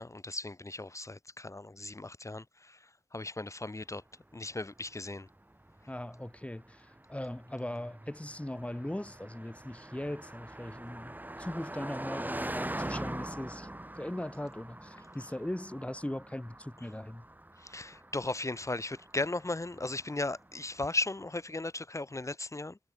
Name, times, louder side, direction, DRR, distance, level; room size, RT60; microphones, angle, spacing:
voice 1, 0.0-4.0 4.3-5.3 17.6-22.8, left 2 dB, 35° left, 2.7 m, -36 dB
Car passing by, 4.3-20.8, right 1 dB, 20° right, 4.2 m, -43 dB
voice 2, 5.9-13.7 14.0-17.3, left 1 dB, 15° left, 3.9 m, -39 dB
wide cardioid pair, 75°, 9 cm